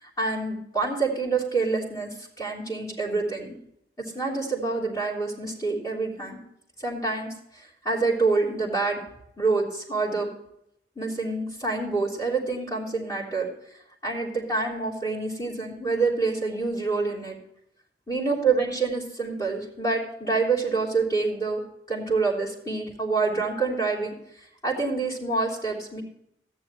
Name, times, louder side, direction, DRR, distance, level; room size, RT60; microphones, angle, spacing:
voice 1, 0.0-3.6 4.0-6.4 6.8-9.0 9.4-10.3 10.9-13.5 14.0-17.4 18.1-21.6 21.9-24.1 24.6-26.0, right 3 dB, 20° left, -4 dB, 3.4 m, -27 dB
14.0 x 10.0 x 3.1 m, 0.73 s
head